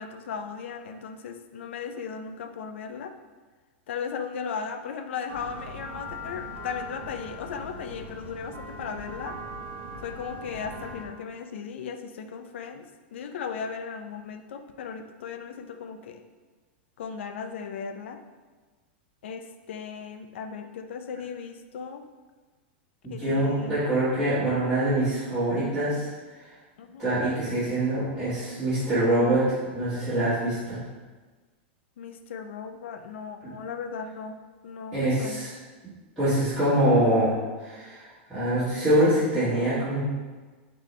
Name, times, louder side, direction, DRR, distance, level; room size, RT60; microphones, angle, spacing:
voice 1, 0.0-3.1 3.9-9.4 10.0-16.2 17.0-18.2 19.2-22.1 23.1-23.8 26.8-27.0 32.0-34.4 34.6-35.4, left 6 dB, 85° left, 8 dB, 0.4 m, -36 dB
sound 1, 5.3-11.1, equal, 90° right, 0.8 m, -40 dB
voice 2, 23.0-26.1 26.4-26.5 27.0-30.8 33.4-33.5 34.9-35.5 36.2-37.3 37.6-40.0, right 1 dB, 5° left, -17 dB, 1.4 m, -24 dB
3.9 x 3.7 x 3.1 m, 1.3 s
supercardioid pair, 175°, 6 cm